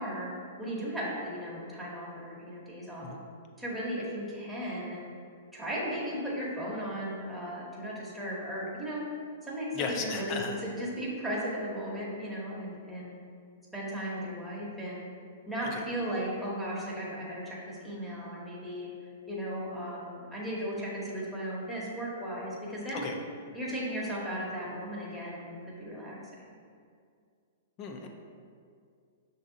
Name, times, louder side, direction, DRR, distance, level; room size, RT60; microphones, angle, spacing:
voice 1, 0.0-3.1 3.6-5.0 5.5-9.0 9.4-13.1 13.7-15.1 15.5-18.9 19.3-23.0 23.5-26.2, equal, ahead, -6 dB, 1.0 m, -36 dB
voice 2, 9.7-10.6 15.7-15.8 22.9-23.2 27.8-28.1, left 4 dB, 35° left, 2 dB, 0.5 m, -35 dB
6.1 x 2.7 x 2.7 m, 2.2 s
hypercardioid pair, 110°, 0 cm